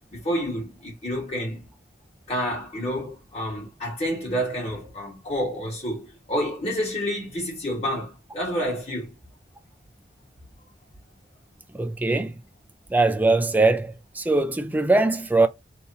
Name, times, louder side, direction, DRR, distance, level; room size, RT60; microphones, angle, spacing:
voice 1, 0.1-1.7 2.3-9.2, equal, 35° left, 2.1 m, -29 dB
voice 2, 11.7-12.3 12.9-15.5, right 2 dB, 10° right, 0.3 m, -21 dB
3.5 x 2.9 x 2.9 m
head